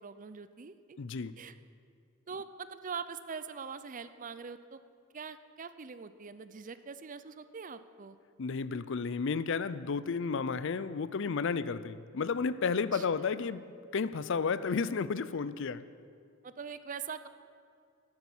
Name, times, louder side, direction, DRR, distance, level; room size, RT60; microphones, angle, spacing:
voice 1, 0.0-1.0 1.4-1.6 2.3-4.8 5.1-8.2 12.9-13.1 16.4-17.3, right 5 dB, 40° right, 13 dB, 0.6 m, -43 dB
voice 2, 1.0-1.3 8.4-13.6 13.9-15.8, left 5 dB, 65° left, 16 dB, 0.5 m, -32 dB
13.5 x 10.5 x 7.2 m, 2.3 s
head